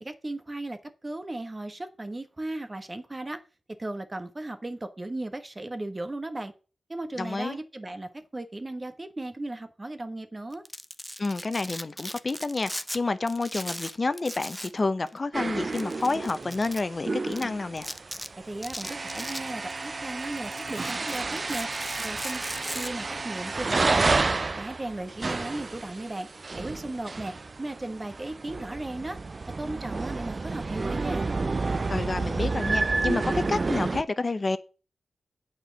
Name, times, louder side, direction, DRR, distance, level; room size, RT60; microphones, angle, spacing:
voice 1, 0.0-3.4 3.8-6.5 6.9-10.6 18.4-21.7 22.0-22.4 22.7-24.2 24.6-26.3 26.5-29.2 29.6-31.3, right 2 dB, 25° right, 1.2 m, -36 dB
voice 2, 7.2-7.6 11.2-17.9 31.9-34.6, left 3 dB, 40° left, 0.7 m, -29 dB
Domestic sounds home sounds, 10.5-13.0 13.3-14.8 15.1-15.2 15.7-16.8 17.3-17.4 17.8-18.3 18.6-19.9 20.2-22.9, equal, ahead, 0.7 m, -38 dB
sound 1, 15.3-34.0, right 3 dB, 45° right, 0.4 m, -30 dB
8.8 x 4.5 x 6.9 m
cardioid pair, 70°, 0 cm